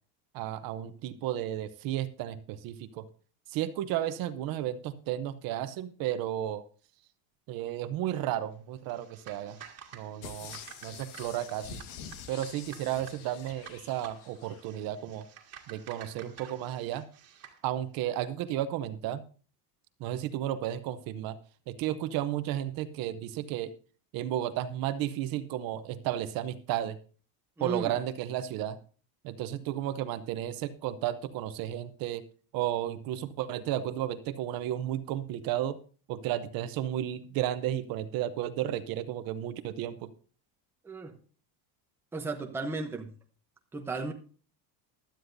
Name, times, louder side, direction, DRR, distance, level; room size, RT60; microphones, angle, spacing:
voice 1, 0.3-3.0 3.5-6.6 7.5-9.6 9.9-11.8 12.3-15.3 15.7-17.1 17.6-19.2 20.0-21.4 21.7-23.7 24.1-27.0 27.6-28.8 29.2-32.2 32.5-35.8 36.1-40.1, right 12 dB, 50° right, 13 dB, 0.7 m, -33 dB
sound 1, 8.8-17.6, right 8 dB, 35° right, 1.8 m, -51 dB
sound 2, 10.2-14.7 15.1-15.2, left 7 dB, 90° left, 1.6 m, -47 dB
voice 2, 27.6-27.9 29.5-29.6 40.8-41.2 42.1-43.1 43.7-44.1, right 3 dB, 5° right, 3 dB, 0.7 m, -35 dB
16.0 x 11.5 x 2.6 m, 0.39 s
cardioid pair, 180°, 45 cm